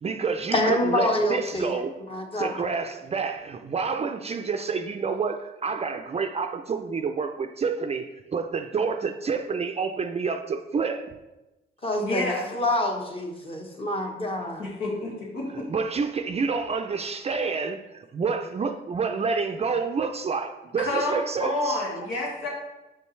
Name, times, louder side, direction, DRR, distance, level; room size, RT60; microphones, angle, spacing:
voice 1, 0.0-1.9 2.4-8.1 8.3-11.1 15.5-21.8, right 5 dB, 30° right, 7 dB, 0.4 m, -28 dB
voice 2, 0.5-1.7 2.1-2.7 11.8-14.6, left 1 dB, 30° left, 2 dB, 1.2 m, -26 dB
voice 3, 12.0-12.5 14.6-15.7 20.8-22.5, left 2 dB, 85° left, -3 dB, 1.9 m, -29 dB
6.9 x 5.4 x 3.2 m, 1.0 s
cardioid pair, 90°, 20 cm